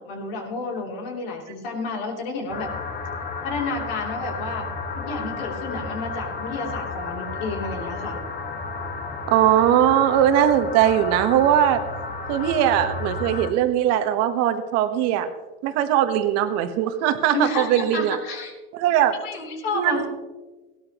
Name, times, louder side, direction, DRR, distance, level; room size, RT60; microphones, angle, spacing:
voice 1, 0.0-2.7 3.4-4.7 4.9-8.2 17.3-18.5 19.2-20.1, left 3 dB, 75° left, 1 dB, 3.2 m, -30 dB
sound 1, 2.5-13.5, left 4 dB, 30° left, 1.6 m, -32 dB
voice 2, 9.3-11.8 12.3-15.3 15.6-18.2 18.7-19.2 19.7-20.1, right 11 dB, 55° right, 9 dB, 1.4 m, -20 dB
17.0 x 12.5 x 3.0 m, 1.2 s
hypercardioid pair, 85°, 30 cm